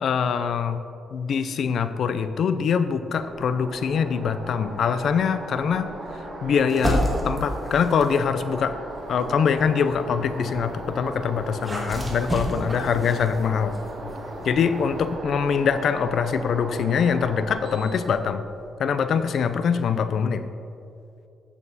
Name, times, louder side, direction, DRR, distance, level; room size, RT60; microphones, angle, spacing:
voice 1, 0.0-0.8 1.1-5.9 6.4-8.8 9.1-13.8 14.4-18.4 18.8-20.4, left 6 dB, 60° left, 11 dB, 0.5 m, -23 dB
sound 1, 3.1-18.7, right 1 dB, 50° right, 2.0 m, -37 dB
sound 2, 6.7-8.3 8.9-15.1, equal, 10° right, 1.9 m, -32 dB
12.5 x 7.2 x 4.1 m, 2.6 s
cardioid pair, 135°, 0 cm